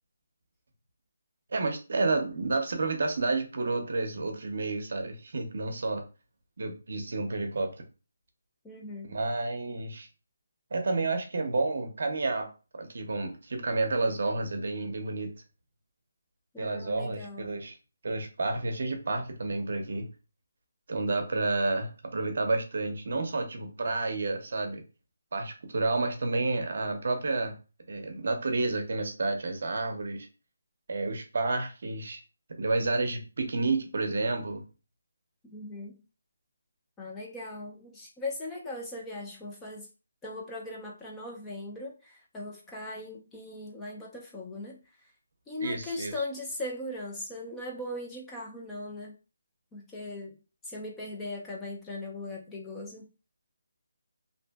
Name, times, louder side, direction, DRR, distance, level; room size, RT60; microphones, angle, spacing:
voice 1, 1.5-6.0 6.6-7.9 9.0-10.1 10.7-12.5 12.7-15.3 16.6-17.8 18.0-20.1 20.9-24.8 25.3-27.5 27.9-30.3 30.9-32.2 32.6-34.6 45.6-46.1, right 3 dB, 60° right, 5 dB, 0.6 m, -30 dB
voice 2, 8.6-9.1 16.5-17.6 35.5-36.0 37.0-39.9 40.2-44.8 45.5-49.1 49.7-50.4 50.6-53.0, left 2 dB, 10° left, -2 dB, 0.3 m, -39 dB
2.6 x 2.6 x 2.3 m, 0.32 s
hypercardioid pair, 170°, 0 cm